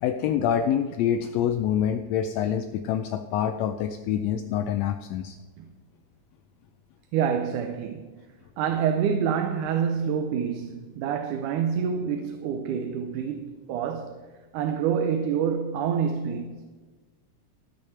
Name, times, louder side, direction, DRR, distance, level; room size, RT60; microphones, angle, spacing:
voice 1, 0.0-5.4, left 9 dB, 80° left, 1.5 m, -26 dB
voice 2, 7.1-8.1 8.6-14.3 14.5-16.6, right 7 dB, 85° right, 2.2 m, -27 dB
14.0 x 6.5 x 5.8 m
omnidirectional pair, 3.5 m